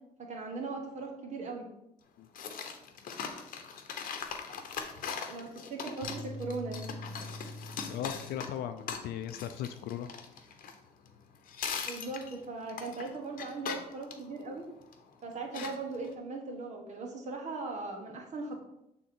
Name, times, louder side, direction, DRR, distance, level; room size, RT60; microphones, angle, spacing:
voice 1, 0.2-1.7 5.3-6.9 11.8-14.6 15.2-18.6, right 3 dB, 45° right, 1 dB, 1.4 m, -39 dB
sound 1, 2.3-11.2 11.5-15.0 15.5-16.1, left 6 dB, 55° left, 1.0 m, -40 dB
sound 2, 6.0-8.5, equal, 70° right, 0.7 m, -44 dB
voice 2, 7.9-10.1, left 10 dB, 70° left, 9 dB, 0.5 m, -37 dB
7.6 x 3.6 x 4.3 m, 0.83 s
cardioid pair, 110°, 17 cm